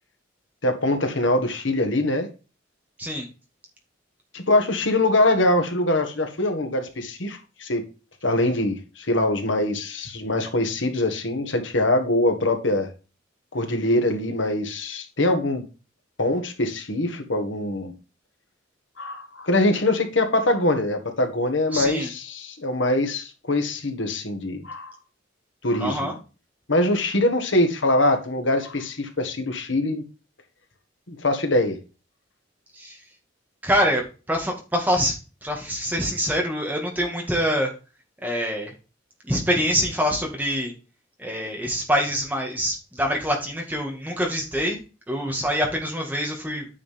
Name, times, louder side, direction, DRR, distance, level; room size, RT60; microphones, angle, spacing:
voice 1, 0.6-2.3 4.3-7.8 8.2-12.9 13.5-15.6 16.2-17.9 19.0-24.9 25.6-26.1 26.7-30.0 31.1-31.8, left 1 dB, 75° left, 1.6 m, -23 dB
voice 2, 21.7-22.1 25.8-26.1 32.8-32.9 33.6-34.0 34.3-35.1 35.4-37.7 38.2-38.7 39.3-40.7 41.2-44.8 45.1-46.7, equal, 10° right, 2.0 m, -25 dB
9.4 x 5.5 x 3.5 m
head